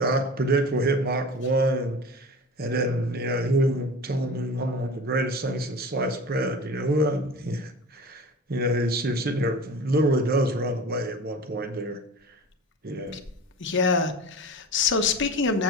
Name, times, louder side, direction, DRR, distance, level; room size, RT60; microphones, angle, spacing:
voice 1, 0.0-2.3 2.6-12.0 12.8-13.2, right 1 dB, 45° right, 0.8 m, -26 dB
voice 2, 13.6-15.6, left 4 dB, 60° left, 1.0 m, -24 dB
7.9 x 7.3 x 4.5 m
head